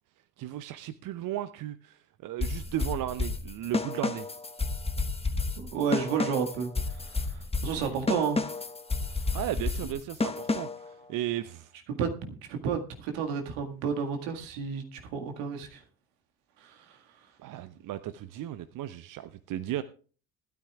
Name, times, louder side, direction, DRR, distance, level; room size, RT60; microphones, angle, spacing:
voice 1, 0.4-4.3 7.8-8.0 9.3-11.7 17.4-19.8, right 13 dB, 45° right, 12 dB, 0.8 m, -35 dB
sound 1, 2.4-10.9, left 3 dB, 15° left, 1.2 m, -31 dB
voice 2, 5.6-6.7 7.1-7.2 7.6-8.4 12.0-15.8 16.6-17.0, right 6 dB, 65° right, 4 dB, 2.0 m, -31 dB
20.0 x 12.5 x 2.4 m, 0.40 s
figure-of-eight pair, 45°, 44 cm